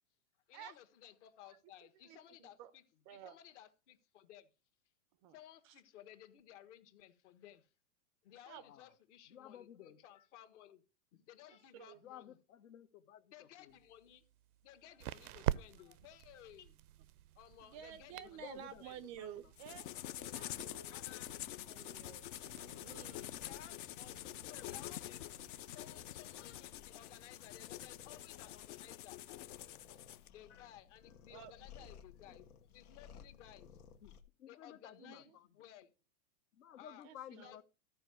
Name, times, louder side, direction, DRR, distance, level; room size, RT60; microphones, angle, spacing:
voice 1, 0.5-2.8 3.1-4.5 5.3-7.7 8.2-10.8 11.1-12.4 13.3-14.2 14.6-16.8 17.3-18.5 18.8-19.0 20.9-21.3 23.4-25.3 25.6-33.7 34.5-35.9 36.7-37.0 37.4-37.6, left 11 dB, 55° left, 1.6 m, -58 dB
voice 2, 1.4-2.7 3.1-3.4 5.2-5.4 5.6-5.8 8.5-8.6 11.7-12.0 17.6-19.9 20.1-21.0 21.7-23.3 31.3-31.5 31.8-31.9 35.0-35.4 37.0-37.5, right 10 dB, 25° right, 0.4 m, -53 dB
voice 3, 8.6-8.9 9.3-10.0 12.0-13.8 18.2-18.8 19.2-19.8 34.0-35.5 36.5-37.6, left 10 dB, 70° left, 1.2 m, -55 dB
sound 1, 13.7-26.1, right 13 dB, 80° right, 0.6 m, -47 dB
sound 2, 19.6-30.3, left 13 dB, 40° left, 0.5 m, -47 dB
sound 3, 20.0-34.2, left 7 dB, 85° left, 1.6 m, -61 dB
13.5 x 4.7 x 6.3 m
hypercardioid pair, 140°, 43 cm